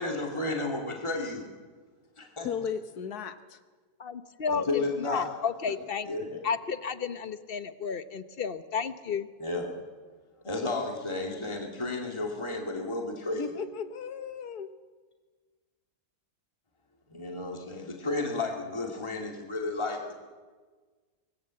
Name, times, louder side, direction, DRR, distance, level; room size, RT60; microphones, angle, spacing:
voice 1, 0.0-1.5 2.2-2.5 4.5-5.3 6.0-6.4 9.4-9.7 10.4-13.5 17.1-20.2, left 2 dB, 15° left, 1 dB, 2.4 m, -32 dB
voice 2, 2.4-3.6 13.3-14.7, left 7 dB, 70° left, 10 dB, 1.6 m, -35 dB
voice 3, 4.0-6.1 6.4-9.3, left 6 dB, 40° left, 11 dB, 1.0 m, -32 dB
25.5 x 19.0 x 7.7 m, 1.5 s
omnidirectional pair, 1.7 m